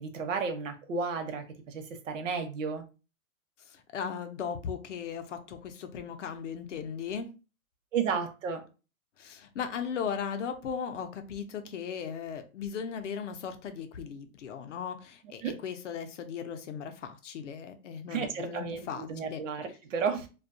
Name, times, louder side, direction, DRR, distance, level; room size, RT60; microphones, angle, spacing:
voice 1, 0.0-2.8 7.9-8.6 15.4-15.6 18.1-20.3, right 5 dB, 60° right, 0.7 m, -33 dB
voice 2, 3.7-7.3 9.2-19.4, left 7 dB, 55° left, 0.6 m, -37 dB
2.5 x 2.3 x 2.5 m
hypercardioid pair, 175°, 43 cm